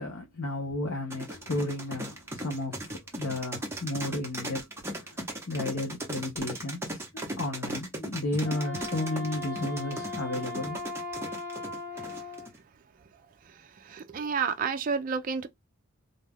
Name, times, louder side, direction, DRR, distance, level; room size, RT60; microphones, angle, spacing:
voice 1, 0.0-10.8, left 2 dB, 70° left, 0.8 m, -33 dB
sound 1, 1.1-12.6, right 1 dB, 10° right, 0.7 m, -37 dB
Wind instrument woodwind instrument, 8.4-12.5, left 3 dB, 35° left, 1.5 m, -38 dB
voice 2, 13.9-15.5, right 5 dB, 40° right, 0.4 m, -30 dB
2.6 x 2.3 x 3.4 m
head